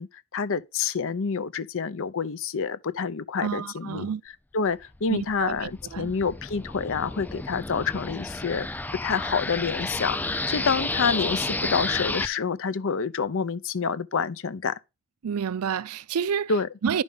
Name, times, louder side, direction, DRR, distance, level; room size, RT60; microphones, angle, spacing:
voice 1, 0.0-4.1 4.5-8.7 9.0-14.8 16.5-16.7, left 5 dB, 60° left, 0.6 m, -28 dB
voice 2, 3.4-4.2 5.1-6.1 15.2-16.5 16.8-17.0, right 7 dB, 75° right, 0.4 m, -29 dB
sound 1, 4.9-12.3, left 2 dB, 10° left, 0.3 m, -31 dB
10.5 x 5.2 x 3.5 m
head